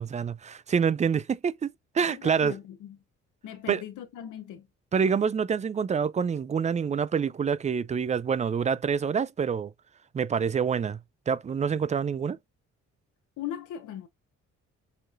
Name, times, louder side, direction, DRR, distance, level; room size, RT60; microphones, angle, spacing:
voice 1, 0.0-2.6 3.7-3.8 4.9-9.7 10.1-11.0 11.3-12.4, right 6 dB, 25° right, 0.4 m, -27 dB
voice 2, 2.1-3.0 3.4-4.7 13.4-14.1, left 10 dB, 80° left, 0.9 m, -38 dB
6.7 x 3.1 x 2.5 m
cardioid pair, 90°, 30 cm